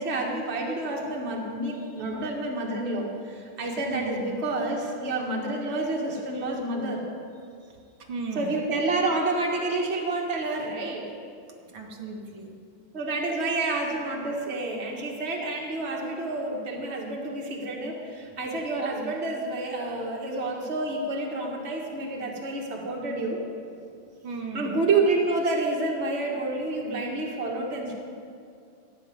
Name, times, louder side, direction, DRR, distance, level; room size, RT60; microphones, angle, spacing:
voice 1, 0.0-7.0 8.3-11.1 12.9-23.4 24.5-27.9, right 2 dB, 35° right, -1 dB, 1.7 m, -29 dB
voice 2, 1.7-2.1 3.8-4.3 7.7-8.6 11.7-12.5 18.2-18.4 24.2-24.9, right 3 dB, 70° right, 0 dB, 1.9 m, -37 dB
13.0 x 6.5 x 9.2 m, 2.5 s
omnidirectional pair, 2.3 m